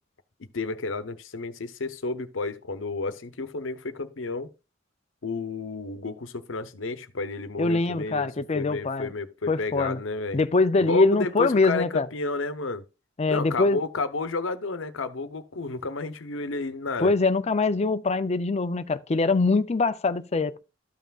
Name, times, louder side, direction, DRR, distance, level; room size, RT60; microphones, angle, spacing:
voice 1, 0.5-4.5 5.2-10.4 10.8-12.8 13.3-17.1, left 3 dB, 90° left, 0.8 m, -31 dB
voice 2, 7.6-9.1 9.5-10.0 10.3-12.1 13.2-13.8 17.0-20.6, left 3 dB, 35° left, 0.5 m, -23 dB
13.0 x 5.8 x 2.4 m
head